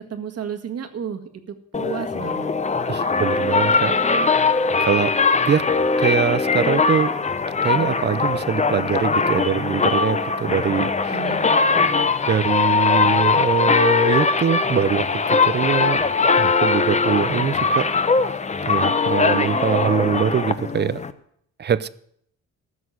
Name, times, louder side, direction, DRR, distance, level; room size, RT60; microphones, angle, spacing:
voice 1, 0.1-1.2 1.5-2.5 11.1-11.7, right 8 dB, 55° right, 1.9 m, -32 dB
sound 1, 1.7-21.1, left 4 dB, 25° left, 0.8 m, -20 dB
voice 2, 2.9-4.0 4.8-5.2 5.5-5.7 6.0-7.2 7.6-11.2 12.3-16.0 16.3-17.9 18.7-21.0 21.6-21.9, right 7 dB, 35° right, 0.6 m, -23 dB
14.5 x 6.2 x 9.5 m
cardioid pair, 90°, 30 cm